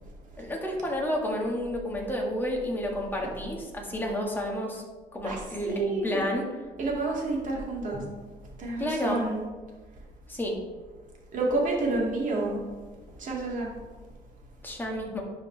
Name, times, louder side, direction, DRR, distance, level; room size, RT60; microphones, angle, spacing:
voice 1, 0.4-4.8 5.1-6.4 8.8-9.2 10.3-10.6 14.6-15.2, left 1 dB, 10° left, -1 dB, 1.7 m, -30 dB
voice 2, 5.2-6.2 6.8-8.0 8.6-9.4 11.3-12.6 13.2-13.7, right 2 dB, 50° right, -2 dB, 2.3 m, -29 dB
11.0 x 4.7 x 3.3 m, 1.3 s
cardioid pair, 110°, 17 cm